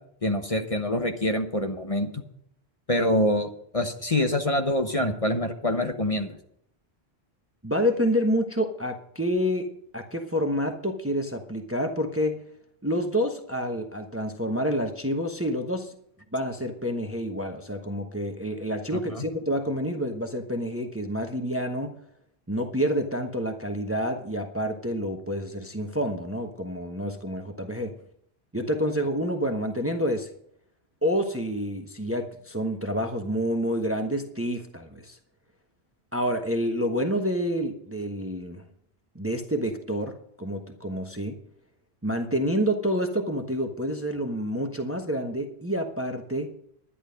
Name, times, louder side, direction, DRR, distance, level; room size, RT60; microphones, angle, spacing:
voice 1, 0.2-2.2 2.9-6.3 19.1-19.2, left 1 dB, 30° left, 5 dB, 1.2 m, -25 dB
voice 2, 7.6-12.4 12.8-15.9 16.3-22.0 22.5-28.0 28.5-30.3 31.0-35.2 36.1-38.6 39.1-41.4 42.0-46.5, equal, 15° right, 5 dB, 1.0 m, -28 dB
11.0 x 11.0 x 5.2 m, 0.69 s
omnidirectional pair, 1.1 m